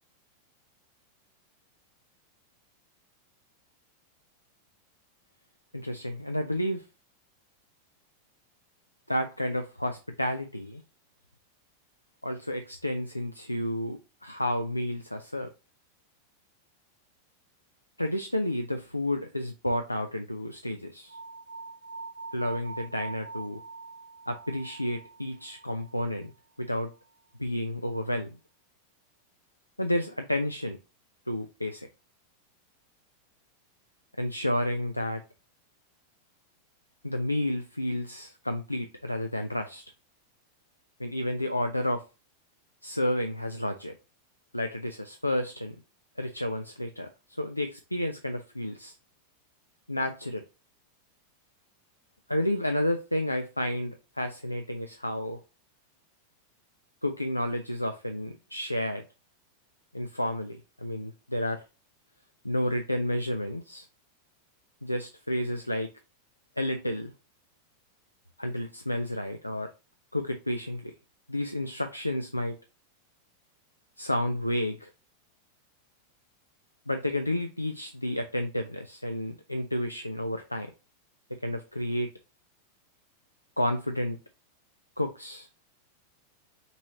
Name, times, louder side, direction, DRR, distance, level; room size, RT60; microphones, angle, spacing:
voice 1, 5.7-6.9 9.1-10.8 12.2-15.5 18.0-21.2 22.3-23.6 24.3-26.3 26.6-26.9 27.4-28.4 29.8-30.8 31.3-31.9 34.2-35.2 37.0-39.8 41.0-42.0 42.8-43.9 44.5-45.8 46.2-47.1 47.4-48.9 49.9-50.4 52.3-55.4 57.0-59.0 59.9-61.6 62.4-63.9 64.8-65.9 66.6-67.1 68.4-69.7 70.1-70.9 71.3-72.6 74.0-74.9 76.9-80.7 81.4-82.1 83.6-84.2 85.0-85.6, left 1 dB, 85° left, 7 dB, 0.3 m, -31 dB
sound 1, 21.1-26.2, right 3 dB, 80° right, 0.4 m, -43 dB
5.3 x 3.0 x 2.9 m, 0.30 s
figure-of-eight pair, 90°, 0 cm